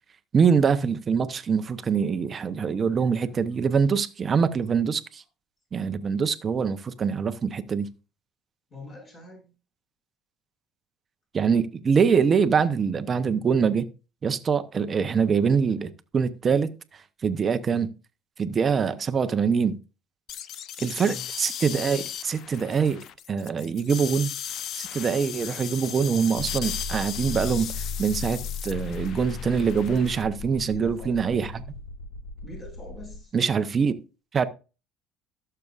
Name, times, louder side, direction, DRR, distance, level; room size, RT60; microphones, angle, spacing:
voice 1, 0.3-5.2 5.7-7.9 11.3-13.9 14.2-17.9 18.4-19.7 20.8-24.3 24.7-31.6 33.3-34.0 34.3-34.4, right 6 dB, 30° right, 0.8 m, -24 dB
voice 2, 3.0-3.3 3.7-3.9 8.7-9.5 21.0-21.2 30.7-31.2 32.4-33.3, left 1 dB, 40° left, 6.3 m, -44 dB
sound 1, 20.3-30.2, left 9 dB, 55° left, 0.6 m, -37 dB
sound 2, 26.4-33.2, left 4 dB, 85° left, 1.5 m, -36 dB
17.0 x 6.8 x 2.5 m
cardioid pair, 115°, 0 cm